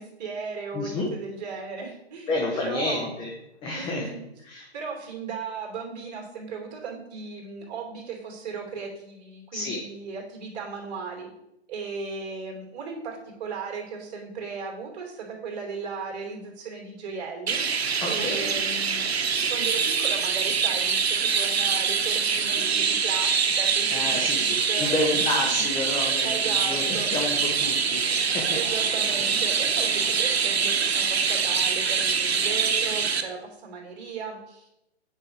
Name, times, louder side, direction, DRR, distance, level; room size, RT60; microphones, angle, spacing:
voice 1, 0.0-3.1 3.7-4.2 4.7-11.3 11.7-17.6 18.0-19.1 19.5-25.6 26.2-27.1 28.5-34.9, right 5 dB, 40° right, 0 dB, 2.9 m, -36 dB
voice 2, 0.7-1.1 2.3-3.3 3.6-4.1 4.4-4.7 9.5-9.8 18.0-18.6 23.9-28.6, left 2 dB, 15° left, 0 dB, 0.9 m, -30 dB
Chirp tweet, 17.5-33.2, right 6 dB, 70° right, 1.0 m, -24 dB
8.5 x 5.5 x 4.7 m, 0.85 s
figure-of-eight pair, 130°, 32 cm